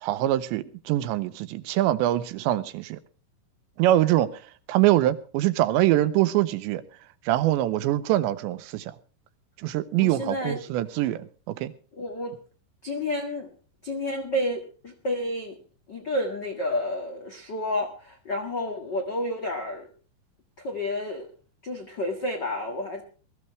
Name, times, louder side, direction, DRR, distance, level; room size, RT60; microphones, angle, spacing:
voice 1, 0.0-3.0 3.8-6.8 7.2-9.0 9.6-11.7, right 14 dB, 80° right, 3.0 m, -24 dB
voice 2, 10.0-10.6 12.0-12.4 12.8-13.5 13.8-15.6 15.9-19.9 20.6-21.3 21.6-23.0, left 1 dB, 75° left, 1.0 m, -30 dB
21.0 x 14.0 x 3.2 m
omnidirectional pair, 5.2 m